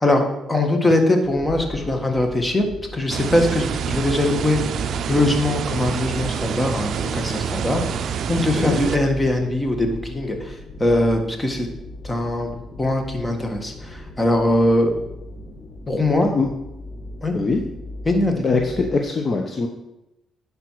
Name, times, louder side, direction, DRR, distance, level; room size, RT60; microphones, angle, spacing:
voice 1, 0.0-2.6 2.9-4.6 5.1-7.8 8.3-11.7 12.0-12.5 12.8-15.0 15.9-16.3 17.2-17.3 18.0-18.4, left 1 dB, 20° left, 4 dB, 1.6 m, -21 dB
sound 1, 1.2-18.9, left 1 dB, 70° left, 2.3 m, -38 dB
sound 2, 3.1-9.0, right 8 dB, 65° right, 0.4 m, -27 dB
voice 2, 16.1-16.5 17.3-17.6 18.4-19.7, left 4 dB, 40° left, 3 dB, 0.9 m, -22 dB
10.0 x 5.5 x 4.8 m, 0.90 s
cardioid pair, 90°, 0 cm